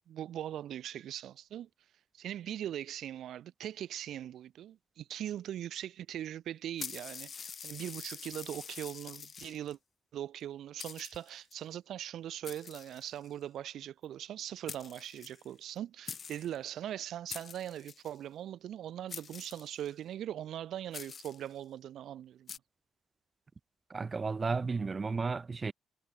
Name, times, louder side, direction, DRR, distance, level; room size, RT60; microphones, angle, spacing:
voice 1, 0.1-1.7 2.1-9.8 10.1-22.6, right 11 dB, 75° right, 1.5 m, -41 dB
sound 1, 6.8-9.7 10.4-10.5 10.8-11.5 12.4-13.4 14.4-14.5 14.7-15.8 16.1-16.6 17.3-18.2 19.1-20.0 20.9-21.5 22.5-22.6, left 6 dB, 45° left, 5.4 m, -45 dB
voice 2, 23.9-25.7, right 4 dB, 30° right, 1.5 m, -33 dB
cardioid pair, 90°, 0 cm